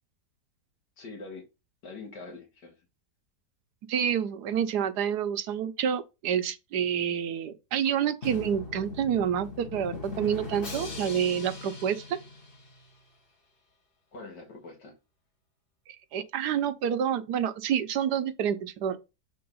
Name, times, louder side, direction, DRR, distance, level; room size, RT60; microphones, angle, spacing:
voice 1, 1.0-1.5 1.8-2.8 14.1-15.0, left 3 dB, 90° left, 2.3 m, -44 dB
voice 2, 3.9-12.2 16.1-19.0, right 8 dB, 75° right, 1.4 m, -28 dB
Drum, 8.2-13.1, left 4 dB, 35° left, 1.5 m, -40 dB
7.7 x 3.0 x 5.5 m
omnidirectional pair, 1.8 m